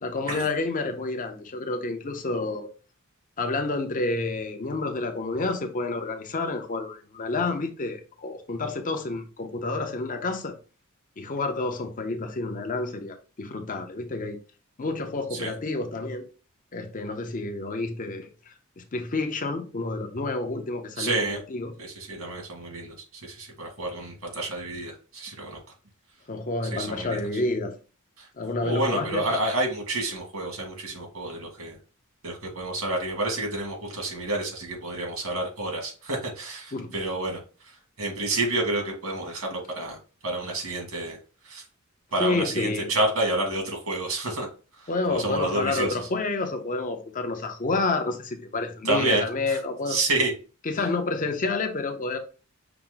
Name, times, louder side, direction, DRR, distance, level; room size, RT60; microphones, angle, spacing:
voice 1, 0.0-2.7 3.4-10.5 11.2-14.4 14.8-16.2 16.7-21.2 21.5-21.7 26.3-27.8 28.4-29.3 36.7-36.9 42.2-42.9 44.9-50.0 50.7-52.2, left 3 dB, 40° left, 0.7 m, -29 dB
voice 2, 21.0-21.4 21.8-25.6 26.7-27.2 28.2-28.3 28.6-31.8 32.2-40.0 40.2-41.2 41.4-41.6 42.1-44.5 44.7-46.0 48.8-49.6 49.9-50.3, right 2 dB, 80° right, 1.8 m, -29 dB
5.8 x 2.0 x 3.8 m
head